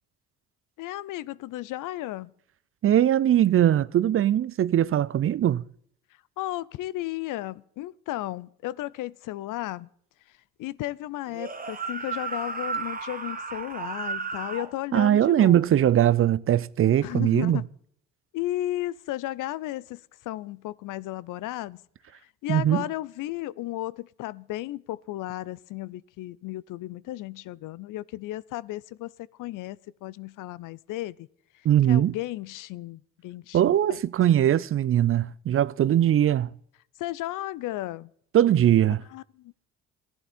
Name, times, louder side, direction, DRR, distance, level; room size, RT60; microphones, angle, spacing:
voice 1, 0.8-2.3 6.4-9.9 10.3-15.9 17.0-17.6 18.3-21.8 22.2-31.3 31.5-34.0 37.0-38.1 39.1-39.7, left 16 dB, 65° left, 0.5 m, -34 dB
voice 2, 2.8-5.6 14.9-17.6 22.5-22.8 31.6-32.1 33.5-36.5 38.3-39.0, right 11 dB, 40° right, 0.4 m, -21 dB
sound 1, 11.3-14.7, right 4 dB, 25° right, 1.4 m, -33 dB
15.0 x 11.0 x 4.2 m
supercardioid pair, 65°, 34 cm